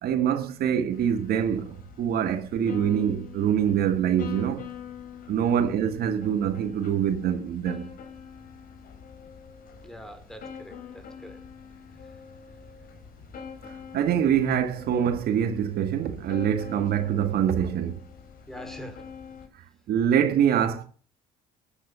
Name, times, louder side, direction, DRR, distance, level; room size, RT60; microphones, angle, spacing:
voice 1, 0.0-4.7 5.3-7.9 13.6-18.0 19.9-20.8, right 9 dB, 65° right, 1.9 m, -25 dB
sound 1, 0.9-19.5, left 7 dB, 55° left, 4.8 m, -44 dB
voice 2, 9.8-11.5 18.5-19.1, equal, 5° left, 4.1 m, -44 dB
14.0 x 10.0 x 8.2 m
cardioid pair, 110°, 17 cm